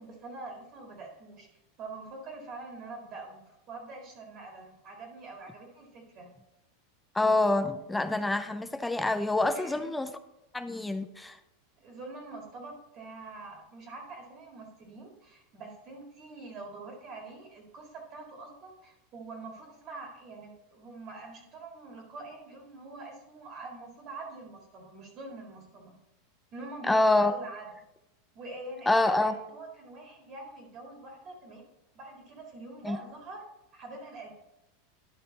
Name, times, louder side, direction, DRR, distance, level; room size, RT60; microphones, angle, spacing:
voice 1, 0.0-1.5 1.8-6.3 9.5-9.9 11.8-25.9 26.5-27.7 28.3-31.6 31.9-33.4 33.7-34.3, right 3 dB, 30° right, 1 dB, 1.9 m, -45 dB
voice 2, 7.1-10.1 10.5-11.4 26.8-27.3 28.9-29.4 32.8-33.0, left 2 dB, 5° left, 10 dB, 0.4 m, -26 dB
11.5 x 5.7 x 4.0 m, 0.92 s
supercardioid pair, 165°, 0 cm